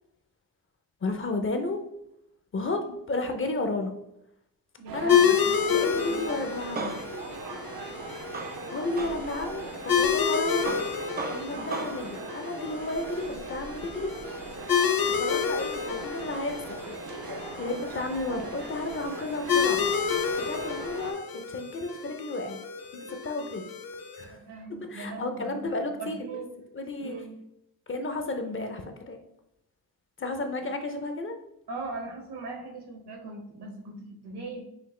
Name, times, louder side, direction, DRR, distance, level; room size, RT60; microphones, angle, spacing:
voice 1, 1.0-1.8 2.5-3.9 4.9-5.4 5.7-7.0 8.7-10.8 11.3-14.1 15.1-17.0 17.3-19.9 20.3-22.6 22.9-23.7 24.2-24.4 24.9-26.3 26.7-27.2 27.9-29.2 30.2-31.3, left 2 dB, 35° left, 6 dB, 0.5 m, -32 dB
voice 2, 4.8-6.5 8.8-9.1 11.5-11.8 24.2-25.6 26.0-26.5 27.0-27.3 31.7-34.6, right 3 dB, 80° right, 0 dB, 1.3 m, -40 dB
sound 1, 4.9-21.1, right 4 dB, 65° right, 0.6 m, -41 dB
sound 2, 5.1-24.2, left 7 dB, 65° left, 0.7 m, -29 dB
Male speech man speaking, 6.4-10.0 10.5-12.2, right 3 dB, 25° right, 0.4 m, -37 dB
5.8 x 2.4 x 3.1 m, 0.81 s
wide cardioid pair, 130°, 39 cm